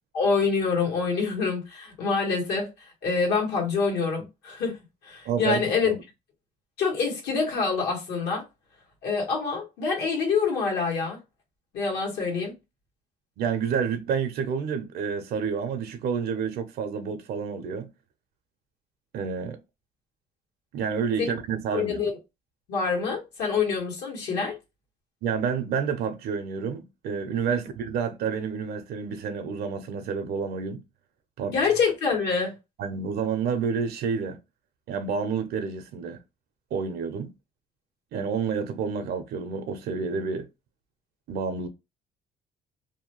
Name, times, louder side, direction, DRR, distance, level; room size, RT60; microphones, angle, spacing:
voice 1, 0.1-4.8 5.0-5.9 6.8-8.4 9.0-11.2 11.7-12.5 21.2-21.3 21.7-22.1 22.7-24.6 27.5-27.6 31.5-32.5, left 5 dB, 75° left, 1.4 m, -26 dB
voice 2, 5.3-6.0 13.4-17.9 19.1-19.6 20.7-22.0 25.2-30.8 31.4-31.5 32.8-34.4 34.9-36.2 36.7-37.3 38.1-40.5 41.3-41.7, right 6 dB, 70° right, 0.5 m, -29 dB
2.7 x 2.2 x 2.9 m
cardioid pair, 110°, 17 cm